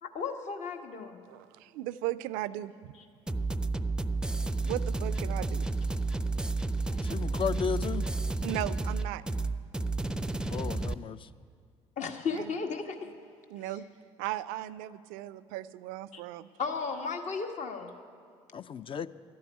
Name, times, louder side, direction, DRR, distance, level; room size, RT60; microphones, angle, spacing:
voice 1, 0.0-1.2 6.9-7.3 12.0-13.1 16.1-16.2 16.6-17.9, left 5 dB, 50° left, 5 dB, 1.4 m, -35 dB
voice 2, 1.3-2.9 4.6-5.7 8.4-9.2 12.3-12.5 13.5-13.9 14.2-16.5, right 14 dB, 70° right, 17 dB, 0.4 m, -36 dB
sound 1, 3.3-10.9, right 3 dB, 5° right, 0.5 m, -31 dB
voice 3, 7.1-8.1 10.3-11.3 18.5-19.1, left 7 dB, 35° left, 14 dB, 0.5 m, -34 dB
12.0 x 9.4 x 9.5 m, 2.1 s
hypercardioid pair, 55°, 15 cm